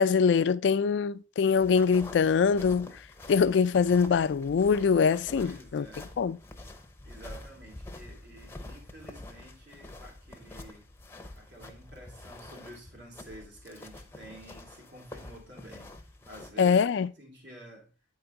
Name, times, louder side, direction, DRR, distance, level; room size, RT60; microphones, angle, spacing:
voice 1, 0.0-2.9 3.3-5.8 6.2-6.4 16.6-17.1, left 6 dB, 70° left, 0.3 m, -23 dB
sound 1, 1.6-16.5, left 1 dB, 10° left, 0.6 m, -47 dB
voice 2, 5.3-6.1 7.0-10.9 11.3-16.0 16.3-16.8 17.1-17.9, equal, 70° right, 2.8 m, -49 dB
8.7 x 4.7 x 3.8 m
head